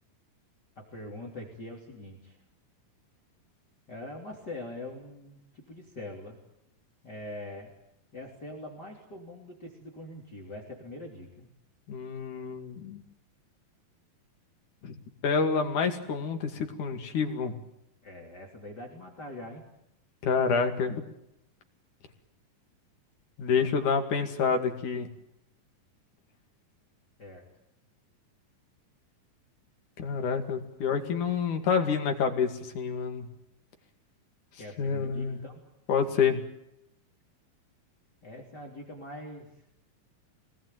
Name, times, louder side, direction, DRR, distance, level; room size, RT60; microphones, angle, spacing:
voice 1, 0.8-2.4 3.9-6.4 7.0-7.7 8.1-11.5 18.0-19.6 27.2-27.4 34.6-35.5 38.2-39.5, left 1 dB, 30° left, 1 dB, 3.6 m, -43 dB
voice 2, 11.9-13.0 14.8-15.0 15.2-17.6 20.2-21.0 23.4-25.1 30.0-33.3 34.8-35.4 35.9-36.5, left 5 dB, 60° left, 5 dB, 3.7 m, -28 dB
25.0 x 19.5 x 9.3 m, 0.82 s
omnidirectional pair, 4.0 m